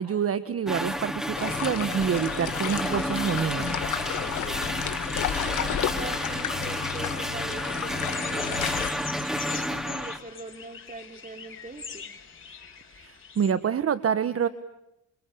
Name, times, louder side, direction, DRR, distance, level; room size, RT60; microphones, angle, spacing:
voice 1, 0.0-3.8 12.9-14.5, right 7 dB, 50° right, 12 dB, 1.5 m, -27 dB
sound 1, 0.7-10.2, equal, ahead, 2.7 m, -31 dB
sound 2, 1.4-8.9, left 11 dB, 75° left, 2.1 m, -32 dB
voice 2, 4.2-4.7 5.3-8.6 9.5-12.1, right 3 dB, 25° right, 7 dB, 4.2 m, -42 dB
sound 3, 8.1-13.5, left 6 dB, 40° left, 7.0 m, -41 dB
29.0 x 28.5 x 7.1 m, 0.85 s
cardioid pair, 90°, 30 cm